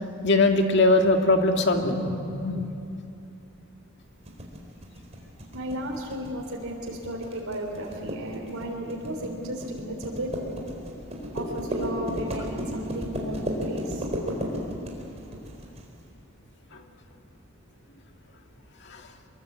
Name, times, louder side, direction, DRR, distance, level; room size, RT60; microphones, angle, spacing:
voice 1, 0.2-2.7, left 2 dB, 55° left, 4 dB, 2.1 m, -21 dB
sound 1, 4.3-15.8, equal, 30° right, 4.2 m, -33 dB
voice 2, 5.5-10.3 11.3-13.4 13.7-14.0, right 1 dB, 90° right, 0 dB, 3.5 m, -34 dB
24.0 x 22.5 x 8.4 m, 2.7 s
head